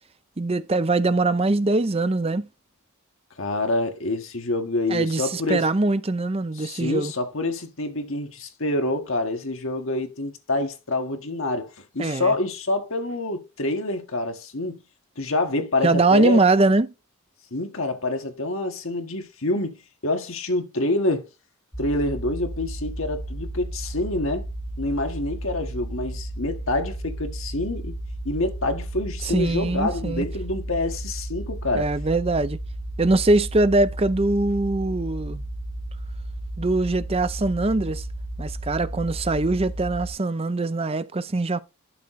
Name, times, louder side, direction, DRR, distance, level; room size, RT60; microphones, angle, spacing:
voice 1, 0.4-2.5 4.9-7.1 12.0-12.3 15.8-16.9 29.2-30.2 31.7-32.6 33.0-35.4 36.6-38.1 38.4-41.6, right 2 dB, 25° right, 0.6 m, -22 dB
voice 2, 3.4-5.7 6.6-14.8 15.2-16.4 17.5-21.3 21.8-24.5 24.8-27.9 28.3-31.9, left 2 dB, 60° left, 1.6 m, -27 dB
sound 1, 21.7-40.1, right 1 dB, 5° left, 1.3 m, -33 dB
12.0 x 4.2 x 3.2 m
head